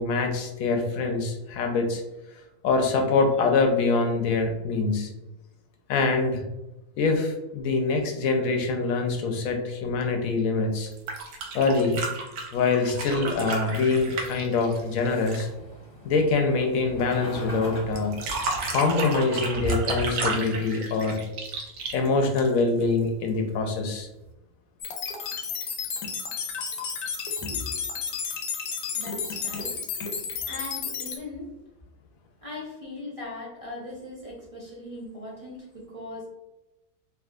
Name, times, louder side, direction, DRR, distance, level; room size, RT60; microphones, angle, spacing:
voice 1, 0.0-2.0 2.6-5.1 5.9-6.4 7.0-10.9 11.5-12.0 12.5-15.5 16.0-18.2 18.7-21.2 21.9-24.1, left 3 dB, 70° left, 4 dB, 1.0 m, -24 dB
sound 1, 10.9-15.5 18.0-22.8 24.2-24.3, right 3 dB, 80° right, 1.1 m, -32 dB
sound 2, 13.2-20.8, left 1 dB, 35° left, 0.9 m, -44 dB
sound 3, 24.8-31.2, left 6 dB, 90° left, 1.2 m, -32 dB
voice 2, 27.4-27.7 28.9-31.5 32.4-36.3, left 2 dB, 35° right, -5 dB, 0.5 m, -39 dB
3.5 x 2.6 x 2.4 m, 0.97 s
omnidirectional pair, 1.6 m